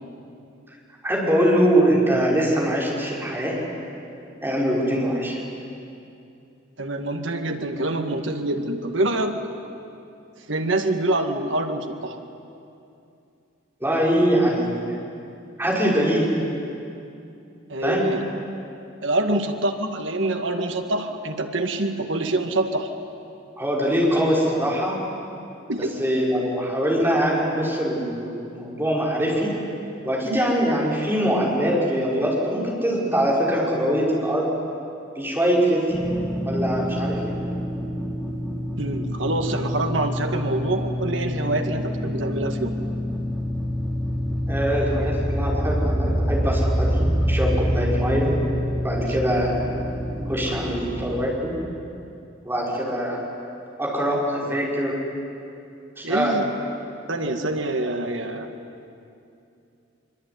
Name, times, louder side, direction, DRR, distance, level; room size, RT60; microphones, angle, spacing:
voice 1, 1.0-3.6 4.4-5.4 13.8-15.0 15.6-16.3 17.8-18.2 23.6-25.0 25.8-29.5 30.0-34.5 35.2-35.9 36.4-37.3 44.5-48.3 48.8-49.6 50.3-51.6 52.4-53.2 53.8-55.0 56.0-56.4, equal, 10° right, -4 dB, 5.9 m, -23 dB
voice 2, 6.8-9.5 10.5-12.2 17.7-18.3 19.0-22.9 25.7-26.0 38.8-42.8 56.0-56.5 57.1-58.5, right 2 dB, 70° right, 5 dB, 2.1 m, -25 dB
sound 1, 35.9-51.2, equal, 5° left, 3.3 m, -26 dB
24.5 x 24.5 x 9.6 m, 2.6 s
head